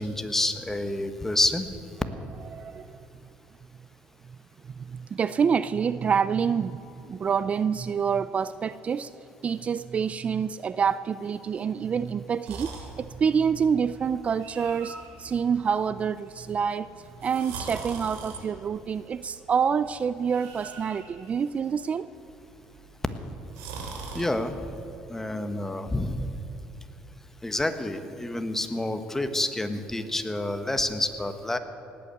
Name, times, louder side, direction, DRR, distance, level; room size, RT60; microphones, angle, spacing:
voice 1, 0.0-1.7 24.1-24.6 25.1-26.2 27.4-31.6, left 1 dB, 10° left, 9 dB, 1.2 m, -28 dB
voice 2, 2.5-3.1 4.8-9.1 9.4-16.9 17.2-22.1, right 6 dB, 35° right, 15 dB, 0.4 m, -27 dB
sound 1, 12.4-24.3, right 4 dB, 90° right, 3.0 m, -43 dB
18.0 x 8.6 x 8.4 m, 2.9 s
cardioid pair, 95°, 4 cm